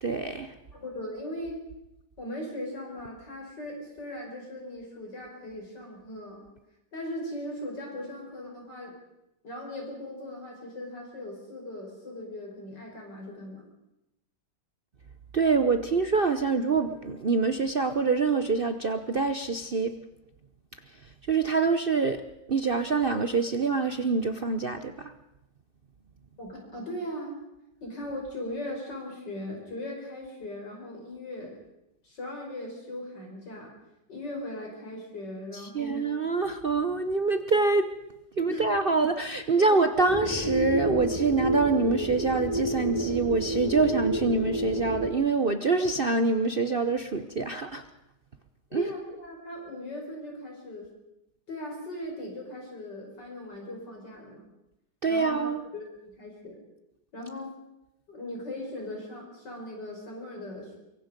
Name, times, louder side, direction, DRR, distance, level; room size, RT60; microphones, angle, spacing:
voice 1, 0.0-0.5 15.3-20.0 21.3-22.2 22.5-25.1 35.5-37.9 38.4-47.8 48.7-48.9 55.0-55.6, right 4 dB, 45° right, 8 dB, 0.8 m, -25 dB
voice 2, 0.7-1.6 2.2-6.4 6.9-8.9 9.4-13.6 26.4-27.4 27.8-31.6 32.0-33.7 34.1-36.1 36.3-36.5 38.4-38.6 39.1-39.2 39.6-39.9 48.7-50.9 51.5-54.4 55.1-56.6 57.1-57.5 58.1-60.7, left 1 dB, 70° left, 0 dB, 6.2 m, -39 dB
sound 1, 40.1-45.1, right 1 dB, 15° right, 2.7 m, -29 dB
23.5 x 23.5 x 5.3 m, 0.90 s
omnidirectional pair, 1.9 m